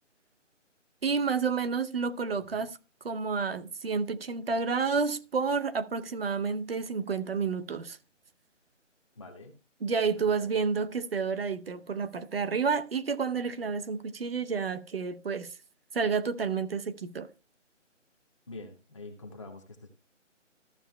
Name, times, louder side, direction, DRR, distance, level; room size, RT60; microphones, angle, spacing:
voice 1, 1.0-2.8 3.0-8.0 9.8-15.5 15.9-17.3, right 5 dB, 50° right, 0.8 m, -30 dB
voice 2, 9.2-9.5 10.2-10.5 18.5-20.0, left 2 dB, 25° left, 0.9 m, -46 dB
14.5 x 6.5 x 2.2 m
figure-of-eight pair, 165°, 37 cm